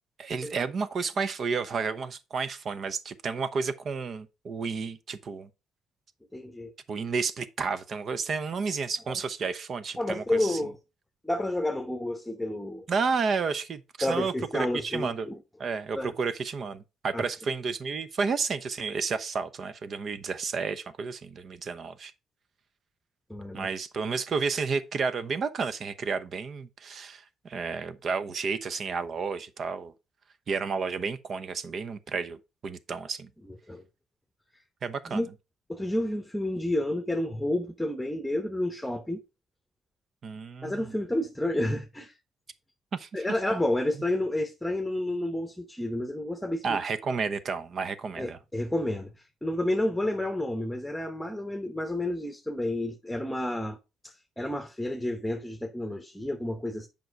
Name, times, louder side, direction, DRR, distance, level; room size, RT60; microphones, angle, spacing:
voice 1, 0.2-5.5 6.9-10.6 12.9-15.3 15.6-22.1 23.5-29.9 30.5-33.3 34.8-35.2 40.2-40.9 42.9-43.2 46.6-48.4, right 5 dB, 55° right, 0.8 m, -31 dB
voice 2, 6.3-6.7 10.0-10.8 11.2-12.9 14.0-15.4 15.9-16.1 17.1-17.2 23.3-23.7 33.7-33.8 35.1-35.3 35.7-39.2 40.6-42.1 43.1-46.8 48.2-53.8 54.0-56.9, left 1 dB, 5° left, 1.0 m, -30 dB
7.7 x 5.3 x 4.7 m
cardioid pair, 90°, 0 cm